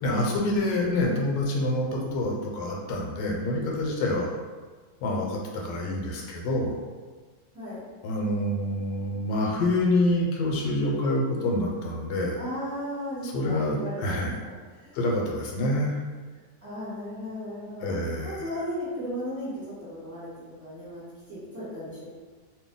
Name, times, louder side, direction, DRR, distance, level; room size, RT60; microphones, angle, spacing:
voice 1, 0.0-4.3 5.0-6.8 8.0-12.4 13.2-14.3 14.9-16.0 17.8-18.4, left 1 dB, 85° left, -1 dB, 1.3 m, -27 dB
voice 2, 7.5-7.8 12.4-14.0 14.4-15.0 16.6-17.9 18.2-19.6 19.9-20.3 20.6-21.0 21.3-22.0, equal, 10° right, -11 dB, 1.2 m, -35 dB
2.7 x 2.6 x 3.7 m, 1.4 s
omnidirectional pair, 2.0 m